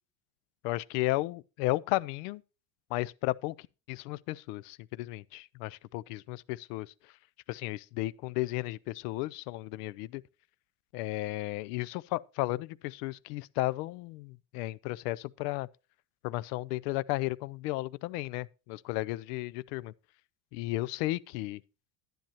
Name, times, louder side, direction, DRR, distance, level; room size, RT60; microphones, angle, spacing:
voice 1, 0.6-2.4 2.9-3.5 3.9-6.9 7.5-10.2 10.9-15.7 16.2-19.9 20.5-21.6, left 19 dB, 80° left, 0.6 m, -34 dB
10.5 x 10.5 x 2.9 m
supercardioid pair, 130°, 47 cm